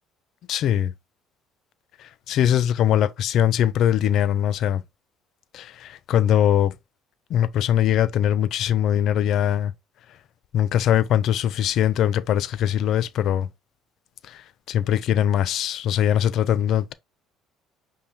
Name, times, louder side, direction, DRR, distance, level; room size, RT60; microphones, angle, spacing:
voice 1, 0.5-0.9 2.3-4.8 5.5-6.7 7.3-9.7 10.5-13.5 14.3-14.4 14.7-16.9, left 10 dB, 55° left, 0.5 m, -21 dB
5.4 x 3.4 x 2.7 m
cardioid pair, 130°, 0 cm